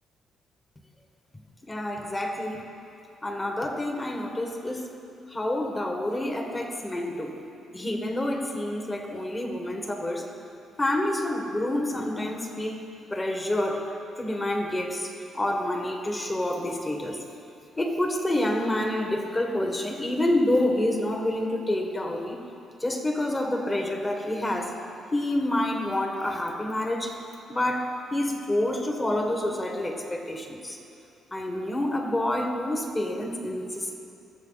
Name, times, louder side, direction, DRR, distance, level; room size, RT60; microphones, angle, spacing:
voice 1, 1.7-2.6 3.2-4.9 5.3-7.4 7.7-10.3 10.8-12.8 13.1-13.9 14.2-17.2 17.8-22.4 22.8-24.7 25.1-27.2 27.5-30.8 31.3-34.0, left 1 dB, 20° left, 2 dB, 1.6 m, -28 dB
21.0 x 7.2 x 4.1 m, 2.7 s
cardioid pair, 90°, 0 cm